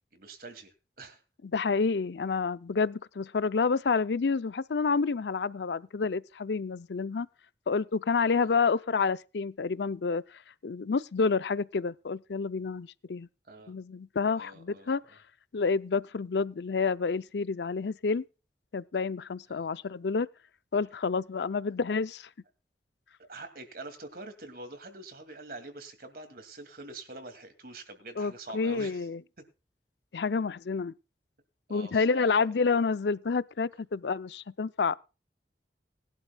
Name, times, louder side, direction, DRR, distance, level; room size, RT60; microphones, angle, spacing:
voice 1, 0.1-1.2 8.4-8.5 13.5-13.7 14.3-14.9 19.5-19.7 23.2-29.1 29.4-29.5 31.7-32.5, right 2 dB, 55° right, 2.4 m, -45 dB
voice 2, 1.5-7.3 7.7-10.2 10.6-13.3 13.7-15.0 15.5-18.2 18.7-20.3 20.7-22.3 28.2-29.2 30.1-30.9 31.7-35.0, left 4 dB, 75° left, 0.5 m, -29 dB
20.0 x 11.5 x 2.3 m
head